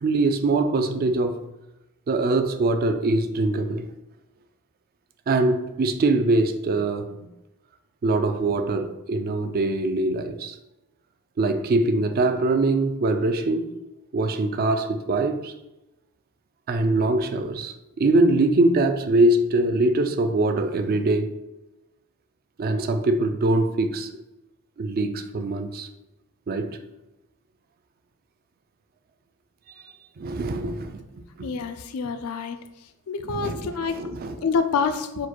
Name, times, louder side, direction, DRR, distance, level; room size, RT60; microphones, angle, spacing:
voice 1, 0.0-1.4 2.1-3.9 5.3-7.3 8.0-10.5 11.4-13.7 14.1-15.5 16.7-21.3 22.6-24.1 24.8-25.9 26.5-26.8 30.2-31.0 31.4-31.5 33.3-33.6 33.9-34.5, right 2 dB, 45° right, 0.4 m, -23 dB
voice 2, 31.4-32.6 33.1-34.0 34.4-35.3, left 5 dB, 75° left, 0.4 m, -27 dB
4.6 x 2.2 x 4.3 m
head